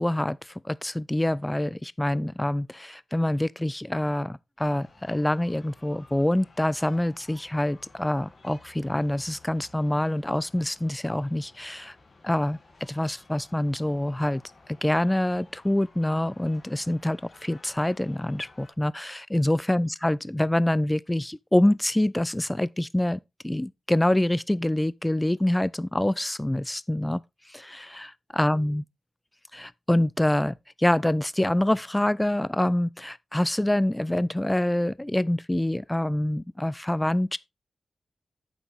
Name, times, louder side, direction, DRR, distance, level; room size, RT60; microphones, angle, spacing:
voice 1, 0.0-12.0 12.2-14.4 14.8-27.2 27.5-28.1 28.4-28.8 29.5-37.4, left 1 dB, 10° left, 0.4 m, -26 dB
sound 1, 4.6-18.7, left 3 dB, 50° left, 2.5 m, -55 dB
8.8 x 7.2 x 3.6 m
wide cardioid pair, 85°, 0 cm